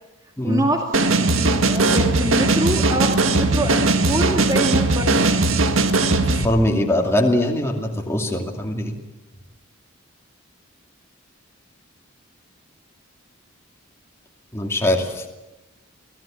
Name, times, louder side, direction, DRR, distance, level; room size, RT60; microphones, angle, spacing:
voice 1, 0.4-0.9 1.2-5.2, right 1 dB, 15° right, 1 dB, 2.1 m, -25 dB
sound 1, 0.9-6.5, right 2 dB, 70° right, 1.8 m, -19 dB
voice 2, 6.4-8.9 14.5-15.3, left 1 dB, 10° left, 1 dB, 2.5 m, -21 dB
25.0 x 17.5 x 8.9 m, 1.1 s
head